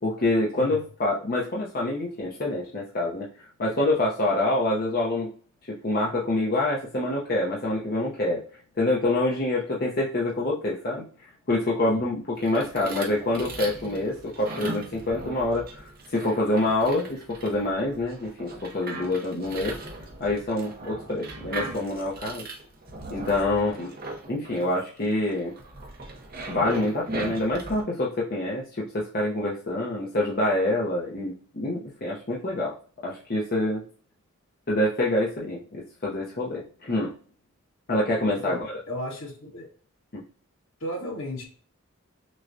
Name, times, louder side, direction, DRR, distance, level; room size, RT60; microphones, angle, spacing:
voice 1, 0.0-3.3 3.6-5.3 5.8-8.4 8.8-11.0 11.5-19.8 20.2-22.4 23.1-23.9 24.3-25.5 26.5-32.7 33.0-33.8 34.7-37.1 37.9-38.7 40.1-40.2, left 2 dB, 45° left, -4 dB, 0.8 m, -26 dB
sound 1, 12.4-27.8, right 2 dB, 45° right, 0.9 m, -39 dB
voice 2, 23.5-23.8 38.4-39.7 40.8-41.5, equal, 70° left, -2 dB, 1.6 m, -35 dB
6.2 x 2.3 x 2.6 m, 0.44 s
head